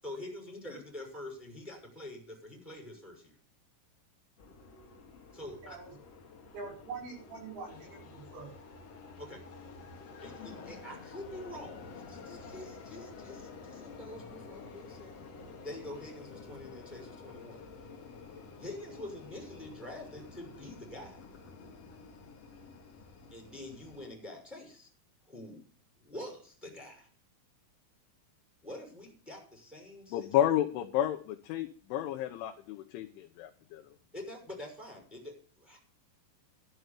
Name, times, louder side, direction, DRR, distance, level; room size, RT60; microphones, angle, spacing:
voice 1, 0.0-3.3 5.3-5.8 9.2-9.4 10.2-15.3 15.6-17.6 18.6-21.2 23.3-24.9 25.2-25.7 26.0-27.1 28.6-30.3 34.1-35.8, left 1 dB, ahead, 0 dB, 5.5 m, -46 dB
sound 1, 4.4-24.1, left 4 dB, 60° left, 1.7 m, -50 dB
voice 2, 6.5-8.5, right 4 dB, 65° right, 0 dB, 7.6 m, -44 dB
voice 3, 30.1-33.8, left 12 dB, 75° left, 3 dB, 3.1 m, -31 dB
12.0 x 7.9 x 8.3 m, 0.43 s
omnidirectional pair, 6.0 m